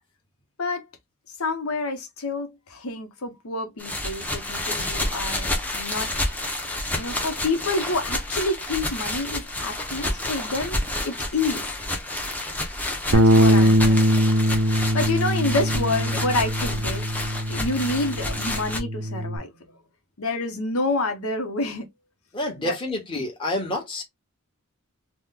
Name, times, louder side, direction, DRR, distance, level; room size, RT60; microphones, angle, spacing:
voice 1, 1.4-6.1 7.0-11.7 13.1-14.1 14.9-17.1 17.5-19.5 20.2-21.9 22.6-22.8 23.2-23.3, left 2 dB, 80° left, 0.8 m, -28 dB
sound 1, 3.8-18.8, left 1 dB, 5° left, 0.7 m, -30 dB
Bass guitar, 13.1-19.4, equal, 80° right, 0.6 m, -21 dB
voice 2, 22.3-24.0, left 1 dB, 25° left, 1.1 m, -28 dB
3.0 x 2.1 x 3.6 m
head